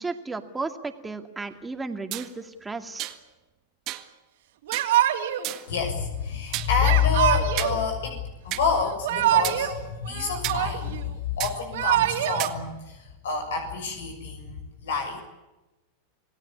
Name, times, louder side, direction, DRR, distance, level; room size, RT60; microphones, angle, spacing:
voice 1, 0.0-3.1, right 3 dB, 10° right, 6 dB, 2.3 m, -34 dB
sound 1, 2.1-2.3 3.0-3.2 3.9-4.1 4.7-4.9 5.4-5.7 6.5-6.7 7.6-7.8 8.5-8.7 9.4-9.6 10.4-10.6 11.4-11.6 12.4-12.6, right 17 dB, 45° right, 1.8 m, -32 dB
Yell / Crying sobbing, 4.7-5.5 6.8-7.8 8.8-9.8 10.1-11.0 11.6-12.5, right 12 dB, 80° right, 3.5 m, -24 dB
voice 2, 5.7-15.2, left 6 dB, 90° left, 6 dB, 6.6 m, -27 dB
27.5 x 17.5 x 8.6 m, 1.0 s
supercardioid pair, 130°, 0 cm